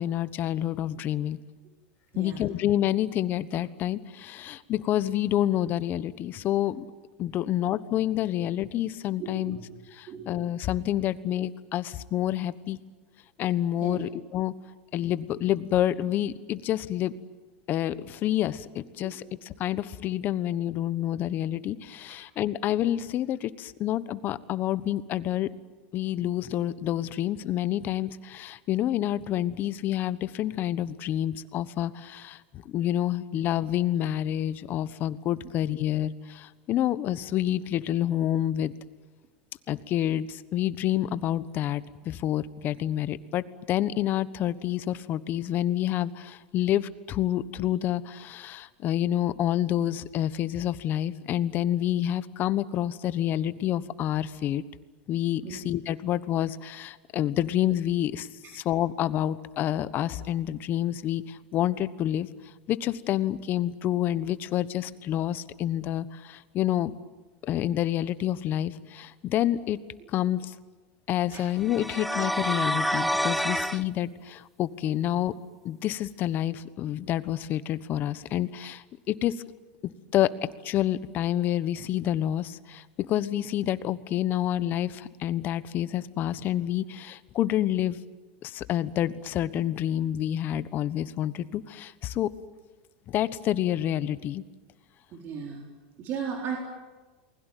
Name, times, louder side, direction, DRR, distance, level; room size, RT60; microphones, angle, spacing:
voice 1, 0.0-1.4 2.2-6.8 7.2-9.6 9.9-12.8 13.4-14.5 14.9-17.1 17.7-25.5 25.9-38.7 39.7-54.6 55.1-58.3 58.5-62.3 62.7-66.9 67.5-69.8 70.1-70.5 71.1-75.3 75.6-79.4 80.1-88.0 88.4-92.3 93.1-94.4, left 12 dB, 40° left, 15 dB, 1.2 m, -28 dB
voice 2, 2.1-2.4 9.2-9.8 10.1-10.5 13.8-14.1 19.0-19.3 20.4-20.5 22.1-22.2 55.4-55.6 58.4-58.5 71.3-71.5 74.9-75.0 95.1-95.6 96.0-96.6, right 6 dB, 40° right, 0 dB, 4.2 m, -37 dB
sound 1, 71.6-73.8, equal, ahead, 0.8 m, -27 dB
29.0 x 21.0 x 9.3 m, 1.3 s
supercardioid pair, 125°, 5 cm